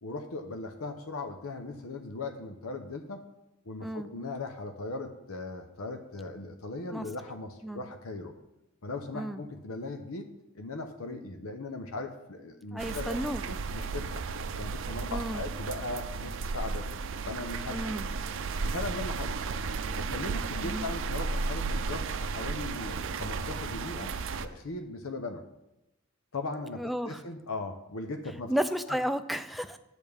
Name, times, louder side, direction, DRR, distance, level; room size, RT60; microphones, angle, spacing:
voice 1, 0.0-3.3 3.7-8.3 8.8-14.2 14.6-16.9 17.3-17.9 18.6-19.3 20.0-24.1 24.4-25.4 26.3-28.5 28.9-29.0, left 2 dB, 90° left, 6 dB, 0.8 m, -38 dB
voice 2, 12.7-13.4 15.1-15.4 17.7-18.1 20.6-20.9 26.8-27.2 28.5-29.8, equal, ahead, 9 dB, 0.4 m, -32 dB
sound 1, 12.8-24.5, right 4 dB, 65° right, 0.5 m, -34 dB
10.5 x 8.1 x 3.5 m, 0.93 s
head